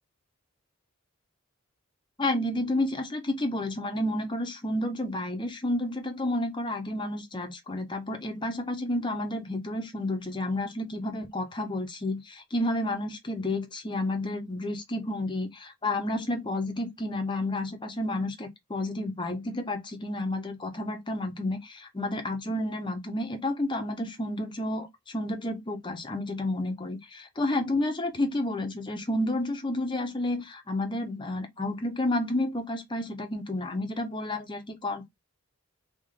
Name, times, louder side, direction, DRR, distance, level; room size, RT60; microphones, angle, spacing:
voice 1, 2.2-35.1, left 1 dB, 20° left, 0.7 m, -31 dB
3.3 x 2.4 x 3.7 m
head